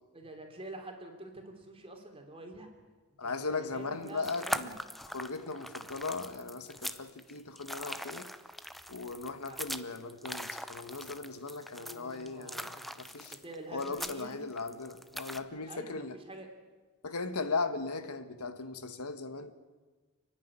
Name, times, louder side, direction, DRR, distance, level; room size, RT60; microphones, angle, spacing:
voice 1, 0.1-2.7 3.2-4.7 9.5-9.6 11.8-12.7 13.2-14.4 15.7-16.5, right 2 dB, 25° right, 3.4 m, -47 dB
voice 2, 3.2-4.7 5.1-8.3 8.9-13.4 13.7-16.2 17.0-19.5, left 3 dB, 80° left, 1.5 m, -38 dB
sound 1, 3.9-15.4, equal, ahead, 0.7 m, -41 dB
29.5 x 10.5 x 9.8 m
head